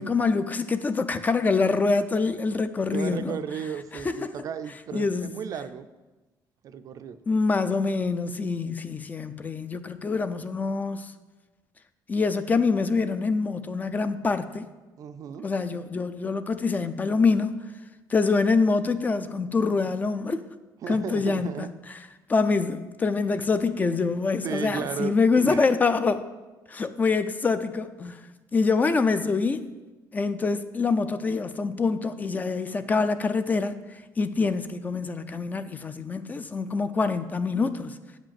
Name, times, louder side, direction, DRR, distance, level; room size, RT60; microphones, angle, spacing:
voice 1, 0.0-3.4 3.9-4.3 4.9-5.3 7.3-11.1 12.1-14.7 15.4-17.6 18.1-20.4 20.9-21.7 22.3-26.2 26.7-28.2 28.5-29.7 30.1-33.8 34.2-38.0, left 4 dB, 20° left, 0.4 m, -25 dB
voice 2, 2.9-5.9 6.6-7.2 15.0-15.5 20.8-21.7 24.4-25.7, right 7 dB, 50° right, 0.5 m, -35 dB
7.8 x 5.1 x 7.5 m
cardioid pair, 155°, 8 cm